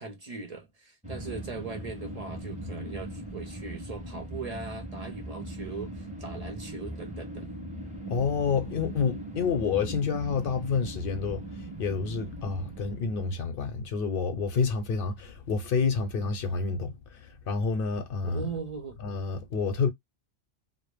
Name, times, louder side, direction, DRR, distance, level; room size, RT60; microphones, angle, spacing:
voice 1, 0.0-7.5 18.2-19.0, right 4 dB, 50° right, 0.5 m, -39 dB
sound 1, 1.0-13.4, right 1 dB, 10° right, 0.6 m, -39 dB
voice 2, 8.1-18.5 19.0-19.9, left 5 dB, 65° left, 0.7 m, -29 dB
2.1 x 2.0 x 3.1 m
omnidirectional pair, 1.1 m